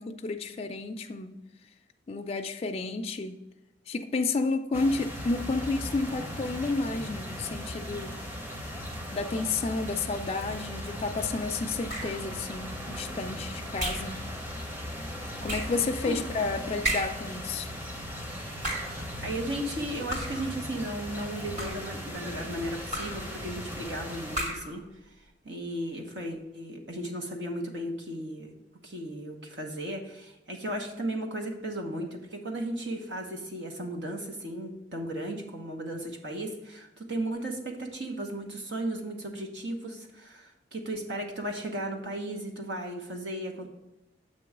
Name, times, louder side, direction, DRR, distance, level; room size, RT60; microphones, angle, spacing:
voice 1, 0.0-1.4 2.1-3.4 3.9-8.2 9.1-14.2 15.4-17.7, left 3 dB, 35° left, 5 dB, 0.4 m, -31 dB
sound 1, 4.7-24.4, equal, 10° right, 0.7 m, -38 dB
sound 2, 11.9-12.3 13.8-14.2 15.5-15.8 16.8-17.3 18.5-19.0 20.1-20.5 21.4-22.0 22.9-23.3 24.3-24.8, right 1 dB, 45° right, 1.8 m, -33 dB
voice 2, 18.7-24.8 25.4-28.5 28.8-43.7, right 1 dB, 85° right, 2 dB, 1.0 m, -35 dB
7.6 x 3.0 x 5.9 m, 0.95 s
head